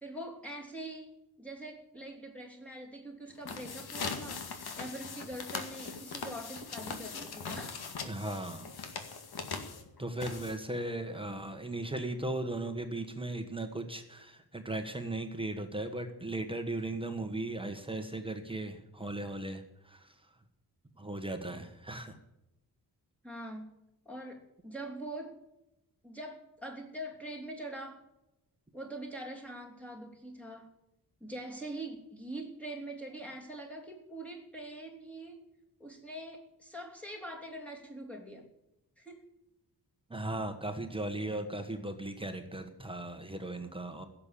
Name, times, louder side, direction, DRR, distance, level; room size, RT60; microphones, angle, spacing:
voice 1, 0.0-4.5 4.8-7.8 23.2-23.8 24.0-25.4 26.0-28.0 28.7-30.7 31.2-35.4 35.8-38.5 39.0-39.3, right 1 dB, 5° left, 0 dB, 3.1 m, -43 dB
sound 1, 3.3-10.8, left 5 dB, 80° left, 2.1 m, -41 dB
voice 2, 8.0-8.7 10.0-20.3 21.0-22.2 40.1-44.0, right 2 dB, 15° right, 5 dB, 1.3 m, -37 dB
16.0 x 7.3 x 8.3 m, 0.89 s
wide cardioid pair, 145°, 37 cm